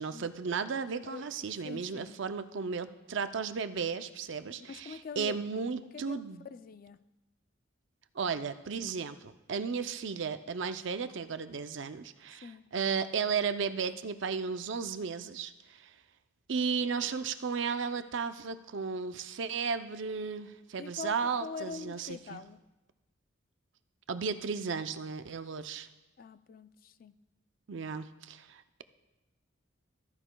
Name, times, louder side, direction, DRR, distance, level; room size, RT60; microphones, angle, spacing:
voice 1, 0.0-6.5 8.1-15.9 16.5-22.4 24.1-25.9 27.7-28.8, right 5 dB, 60° right, 10 dB, 0.5 m, -34 dB
voice 2, 0.9-1.3 1.6-2.2 4.6-5.6 5.9-6.2 6.5-7.0 12.4-12.6 20.8-22.6 26.2-27.1, left 4 dB, 45° left, 13 dB, 0.3 m, -44 dB
14.5 x 13.5 x 2.3 m, 1.0 s
head